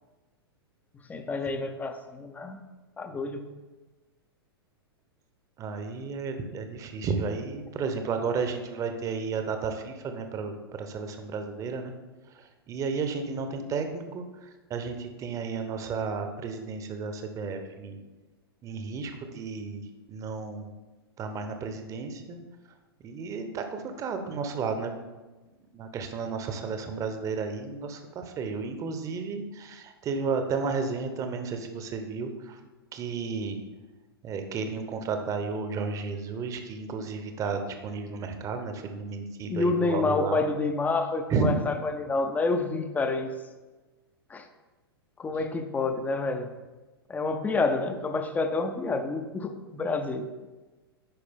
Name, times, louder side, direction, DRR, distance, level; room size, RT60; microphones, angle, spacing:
voice 1, 1.1-2.6 3.0-3.4 39.5-43.3 44.3-44.5 45.2-46.5 47.1-50.3, left 3 dB, 10° left, 7 dB, 0.6 m, -28 dB
voice 2, 5.6-11.9 12.3-18.0 18.6-19.8 20.1-20.7 21.2-22.4 23.0-24.9 25.7-32.6 32.9-33.6 34.2-40.4 41.3-41.5 45.3-45.4, right 5 dB, 25° right, 7 dB, 0.9 m, -33 dB
10.5 x 4.8 x 3.6 m, 1.2 s
figure-of-eight pair, 100°, 13 cm